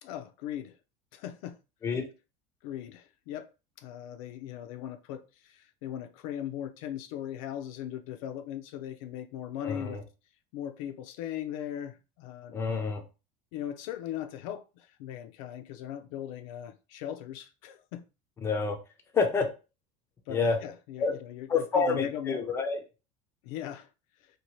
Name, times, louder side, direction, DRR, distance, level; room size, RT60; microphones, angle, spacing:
voice 1, 0.0-0.8 1.1-1.6 2.6-3.5 3.8-10.0 10.5-12.5 13.5-18.0 20.3-22.5 23.4-23.9, left 10 dB, 75° left, 0.4 m, -39 dB
voice 2, 9.6-10.0 12.5-13.0 18.4-18.8 19.1-19.5 20.3-20.6 21.0-21.2 21.5-22.8, left 4 dB, 15° left, 0.4 m, -28 dB
2.8 x 2.2 x 3.0 m
cardioid pair, 165°, 17 cm